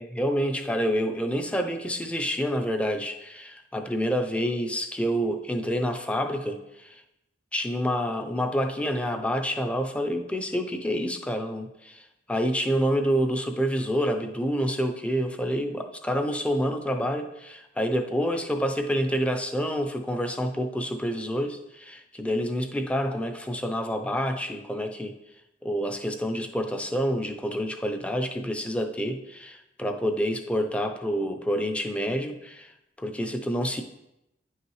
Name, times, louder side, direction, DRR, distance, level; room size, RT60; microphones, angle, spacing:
voice 1, 0.0-7.0 7.5-25.1 25.6-32.7 33.0-33.8, equal, 5° left, 6 dB, 0.5 m, -28 dB
9.6 x 5.6 x 3.1 m, 0.89 s
head